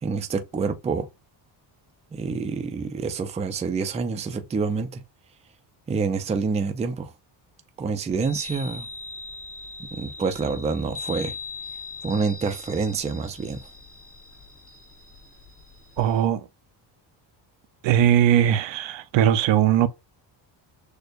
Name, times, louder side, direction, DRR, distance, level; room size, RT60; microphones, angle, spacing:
voice 1, 0.0-1.1 2.1-5.0 5.9-7.1 7.8-8.9 9.9-11.3 12.0-13.6, right 4 dB, 15° right, 0.4 m, -27 dB
Chime, 8.1-16.3, left 4 dB, 30° left, 0.9 m, -40 dB
voice 2, 16.0-16.4 17.8-19.9, right 11 dB, 75° right, 0.6 m, -19 dB
6.5 x 2.2 x 2.5 m
cardioid pair, 135°, 46 cm